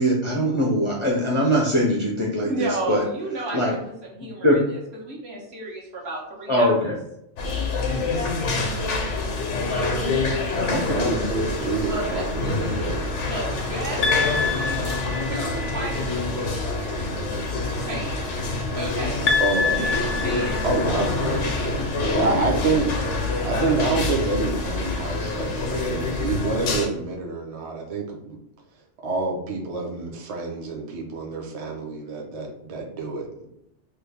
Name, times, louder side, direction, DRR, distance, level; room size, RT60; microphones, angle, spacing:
voice 1, 0.0-3.0 3.5-3.7 4.4-4.6 6.5-7.0 10.6-11.0, equal, 40° left, -4 dB, 0.4 m, -22 dB
voice 2, 2.4-6.9 11.9-12.8 13.2-18.3 18.7-19.3 19.8-20.6, right 2 dB, 65° right, -3 dB, 1.2 m, -34 dB
sound 1, 7.4-26.9, left 3 dB, 85° left, 1.0 m, -26 dB
voice 3, 10.9-13.0 19.4-19.8 20.4-22.9 23.4-28.4 29.0-33.5, right 3 dB, 40° right, 0 dB, 0.6 m, -27 dB
sound 2, 11.5-23.9 24.5-26.6, right 3 dB, 90° right, 1.4 m, -41 dB
sound 3, 14.0-15.7 19.3-21.3, left 5 dB, 65° left, 0.7 m, -26 dB
3.1 x 2.3 x 3.4 m, 0.79 s
omnidirectional pair, 1.2 m